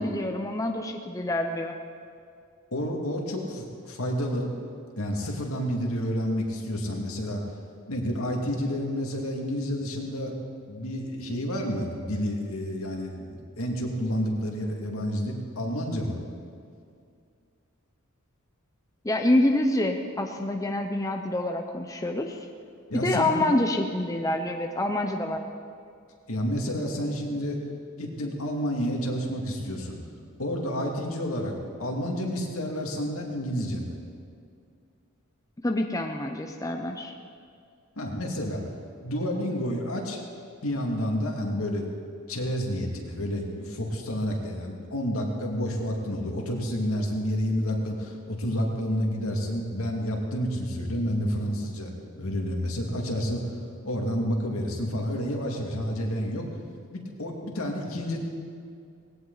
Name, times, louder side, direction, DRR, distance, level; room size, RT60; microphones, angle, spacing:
voice 1, 0.0-1.8 19.0-22.5 22.9-25.4 35.6-37.1, left 1 dB, 15° left, 4 dB, 0.7 m, -26 dB
voice 2, 2.7-4.5 5.0-7.4 7.9-10.3 10.7-16.2 22.9-23.4 26.3-27.6 28.0-30.0 30.4-31.5 31.8-34.0 38.0-38.6 39.0-40.2 40.6-41.9 42.3-53.4 53.8-56.5 56.9-58.2, equal, 70° left, 0 dB, 2.4 m, -29 dB
18.5 x 17.5 x 4.1 m, 2.3 s
head